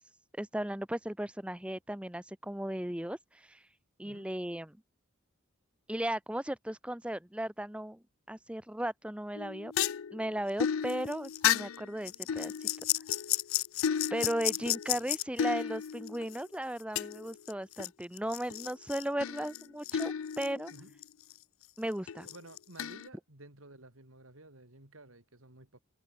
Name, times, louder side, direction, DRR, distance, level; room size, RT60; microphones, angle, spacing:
voice 1, 0.4-3.6 4.0-4.8 5.9-9.7 10.1-12.7 14.1-20.7 21.8-22.3, right 1 dB, 5° right, 0.9 m, -36 dB
sound 1, 9.4-16.4 17.0-17.9 18.2-21.0 21.3-21.4 22.1-23.1, left 10 dB, 85° left, 0.5 m, -33 dB
voice 2, 22.2-25.8, right 2 dB, 85° right, 4.4 m, -53 dB
head